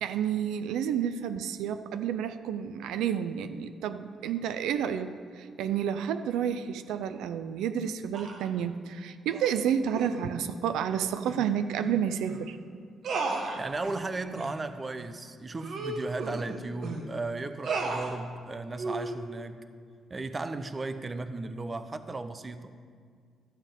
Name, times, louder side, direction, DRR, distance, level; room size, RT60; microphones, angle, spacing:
voice 1, 0.0-12.6, right 8 dB, 90° right, 11 dB, 0.4 m, -30 dB
sound 1, 8.1-8.5 9.3-9.6 9.9-10.2 11.2-11.4 11.8-11.9 12.3-12.4 13.0-14.0 14.4-14.5 15.0-15.1 15.6-17.0 17.6-18.1 18.8-19.2, right 3 dB, 65° right, 1.4 m, -34 dB
voice 2, 13.6-19.6 20.1-22.7, right 3 dB, 30° right, 11 dB, 0.6 m, -35 dB
13.0 x 7.3 x 5.3 m, 2.1 s
cardioid pair, 90°, 0 cm